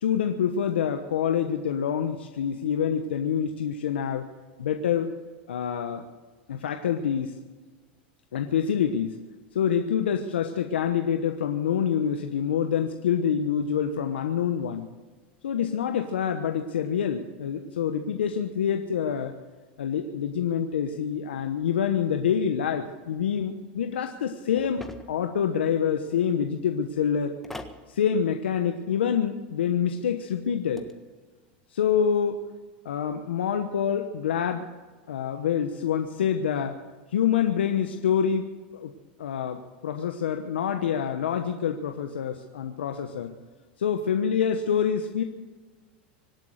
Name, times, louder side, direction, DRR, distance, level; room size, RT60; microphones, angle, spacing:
voice 1, 0.0-4.3 4.6-5.1 5.5-6.0 6.5-7.4 8.3-9.2 9.5-14.9 15.4-19.4 19.8-27.4 27.9-30.9 31.7-32.4 32.8-34.7 35.1-36.8 37.1-38.9 39.2-43.3 43.8-45.2, left 8 dB, 90° left, 6 dB, 1.1 m, -26 dB
sound 1, 24.6-25.3 27.4-27.8 30.5-30.9, left 2 dB, 5° left, 1.6 m, -41 dB
25.5 x 8.5 x 6.5 m, 1.3 s
hypercardioid pair, 110°, 6 cm